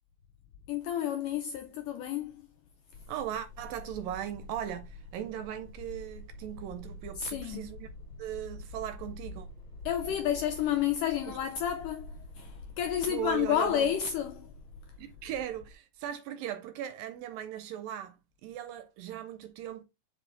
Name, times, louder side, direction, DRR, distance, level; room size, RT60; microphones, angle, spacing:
voice 1, 0.7-2.3 7.2-7.6 9.9-14.5, left 10 dB, 85° left, 1.9 m, -30 dB
sound 1, 2.9-15.7, left 2 dB, 50° left, 1.7 m, -47 dB
voice 2, 3.1-7.9 8.2-9.5 10.1-10.2 11.3-11.4 13.1-13.9 15.0-19.8, right 11 dB, 80° right, 2.2 m, -38 dB
5.9 x 5.1 x 3.4 m
omnidirectional pair, 4.4 m